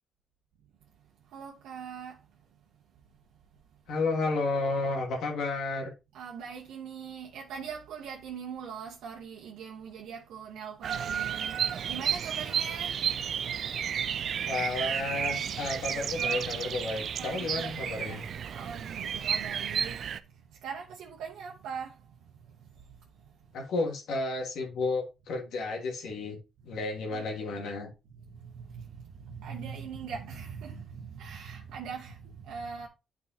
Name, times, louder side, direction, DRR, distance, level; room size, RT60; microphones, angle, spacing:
voice 1, 1.3-2.2 6.1-11.6 11.9-13.0 16.2-16.4 17.2-18.2 18.5-20.0 20.6-22.0 27.1-27.2 27.8-32.9, right 6 dB, 85° right, 1.0 m, -41 dB
voice 2, 3.9-5.9 14.4-18.2 23.5-26.4 26.6-27.9, left 3 dB, 80° left, 1.6 m, -32 dB
Bird vocalization bird call bird song, 10.8-20.2, right 8 dB, 60° right, 0.4 m, -32 dB
8.9 x 4.7 x 2.8 m
cardioid pair, 90°, 0 cm